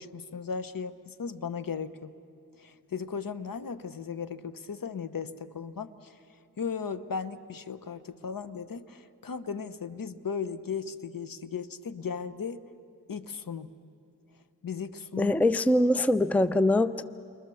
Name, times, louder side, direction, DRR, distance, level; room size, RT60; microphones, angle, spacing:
voice 1, 0.0-2.1 2.6-6.2 6.6-12.6 13.1-13.7 14.6-15.3, left 6 dB, 55° left, 13 dB, 1.0 m, -36 dB
voice 2, 15.2-17.0, left 1 dB, 5° left, 14 dB, 0.5 m, -23 dB
29.5 x 24.5 x 7.0 m, 2.6 s
cardioid pair, 65°, 40 cm